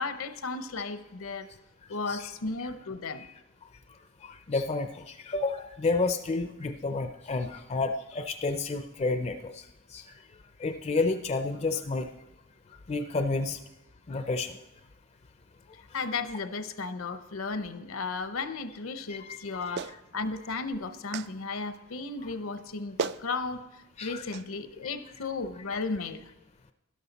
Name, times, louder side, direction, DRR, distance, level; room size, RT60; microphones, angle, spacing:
voice 1, 0.0-1.5 1.9-3.3 15.9-26.3, left 4 dB, 70° left, 11 dB, 0.7 m, -35 dB
voice 2, 4.2-9.6 9.9-10.0 10.6-12.1 12.9-13.6 14.1-14.6 19.1-19.4 24.0-24.2, left 3 dB, 30° left, 8 dB, 0.4 m, -30 dB
Clapping, 19.8-20.0 21.1-21.3 22.6-22.7 23.0-23.2 24.3-24.5, right 6 dB, 50° right, 0.3 m, -33 dB
12.5 x 11.5 x 4.1 m, 0.98 s
head